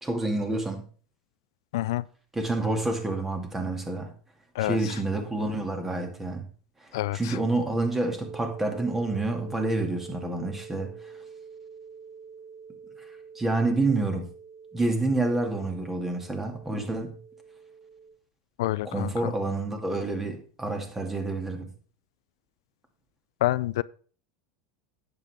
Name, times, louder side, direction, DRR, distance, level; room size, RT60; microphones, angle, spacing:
voice 1, 0.0-0.8 2.3-4.1 4.6-6.4 7.1-10.9 13.4-14.3 14.7-17.1 18.8-21.7, right 2 dB, 15° right, 2.3 m, -28 dB
voice 2, 1.7-2.0 4.6-5.0 6.9-7.4 18.6-19.3 23.4-23.8, left 16 dB, 75° left, 0.3 m, -28 dB
sound 1, 8.2-18.1, right 6 dB, 55° right, 3.2 m, -46 dB
10.5 x 8.3 x 3.5 m
supercardioid pair, 110°, 2 cm